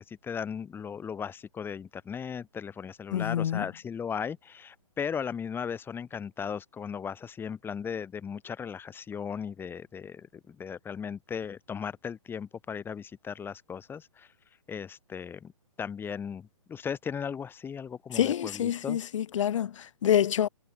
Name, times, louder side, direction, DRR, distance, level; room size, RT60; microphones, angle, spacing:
voice 1, 0.1-14.3 14.7-15.5 15.8-19.0, left 7 dB, 10° left, 4.0 m, -37 dB
voice 2, 3.1-3.6 18.1-20.5, left 10 dB, 55° left, 1.4 m, -27 dB
hypercardioid pair, 140°, 19 cm